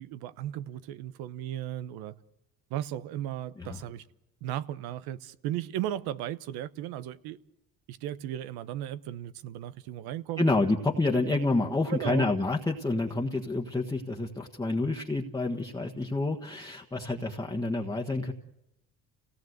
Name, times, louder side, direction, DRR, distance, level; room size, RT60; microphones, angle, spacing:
voice 1, 0.0-2.2 2.7-4.0 4.4-7.4 7.9-10.5 11.9-12.3, right 12 dB, 85° right, 1.1 m, -35 dB
voice 2, 10.4-18.3, left 2 dB, 10° left, 1.4 m, -28 dB
29.0 x 17.5 x 8.0 m
cardioid pair, 120°, 36 cm